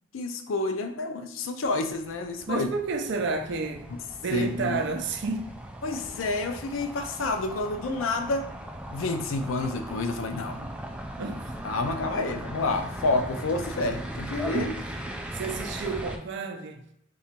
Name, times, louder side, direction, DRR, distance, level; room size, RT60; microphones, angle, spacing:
voice 1, 0.1-2.7 3.9-4.0 4.3-4.8 5.8-8.5 8.9-10.6 11.6-14.7, left 3 dB, 85° left, 0.4 m, -29 dB
sound 1, 1.6-16.2, right 1 dB, 5° right, 0.3 m, -39 dB
voice 2, 2.5-3.9 4.2-5.6 10.4-10.8 11.2-11.5 12.0-12.1 14.5-14.9 15.3-16.9, right 4 dB, 65° right, 0.5 m, -31 dB
2.9 x 2.3 x 4.2 m
head